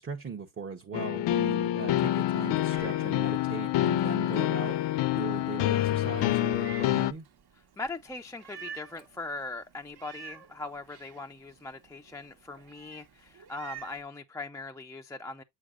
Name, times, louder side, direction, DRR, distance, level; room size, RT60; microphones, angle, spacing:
voice 1, 0.0-4.8 5.1-7.2, right 6 dB, 30° right, 0.9 m, -39 dB
sound 1, 0.9-7.1, left 14 dB, 65° left, 0.6 m, -27 dB
Meow, 2.0-14.0, right 8 dB, 55° right, 1.2 m, -51 dB
voice 2, 7.8-15.4, left 3 dB, 5° left, 0.4 m, -40 dB
6.9 x 6.3 x 2.4 m
cardioid pair, 90°, 46 cm